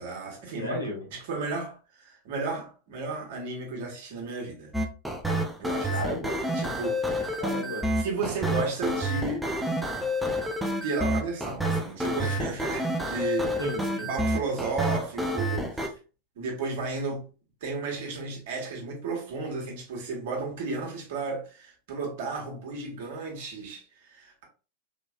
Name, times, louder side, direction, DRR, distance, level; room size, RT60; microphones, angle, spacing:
voice 1, 0.0-0.8 1.1-4.7 5.6-6.0 6.5-7.4 8.0-9.5 10.8-13.6 14.1-16.0 16.4-17.3 17.6-24.4, right 3 dB, 50° right, 1.4 m, -33 dB
voice 2, 0.6-1.1 5.9-6.4 7.4-7.9 13.6-14.1, equal, 80° left, 1.6 m, -33 dB
sound 1, 4.7-15.9, equal, 5° right, 0.5 m, -29 dB
3.9 x 3.0 x 2.4 m
figure-of-eight pair, 90°, 0 cm